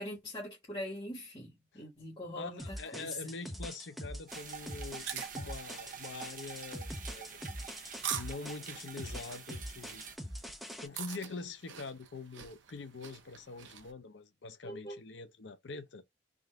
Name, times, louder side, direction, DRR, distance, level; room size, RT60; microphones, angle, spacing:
voice 1, 0.0-3.3 14.6-15.0, left 1 dB, 25° left, 1.4 m, -42 dB
voice 2, 2.3-7.4 8.1-10.0 10.8-16.0, left 3 dB, 75° left, 0.6 m, -44 dB
sound 1, 2.6-10.9, equal, ahead, 0.7 m, -43 dB
sound 2, 4.3-10.2, right 7 dB, 45° right, 0.9 m, -47 dB
sound 3, 4.8-13.9, right 8 dB, 90° right, 0.7 m, -45 dB
3.8 x 2.5 x 3.4 m
head